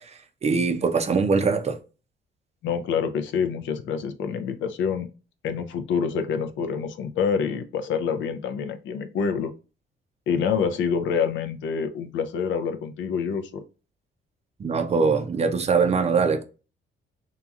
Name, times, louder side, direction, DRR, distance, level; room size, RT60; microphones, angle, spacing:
voice 1, 0.0-1.8 14.6-16.4, right 5 dB, 35° right, 0.5 m, -22 dB
voice 2, 2.6-5.1 5.4-9.5 10.3-13.6, left 6 dB, 75° left, 0.5 m, -27 dB
2.9 x 2.3 x 2.3 m
cardioid pair, 90°, 20 cm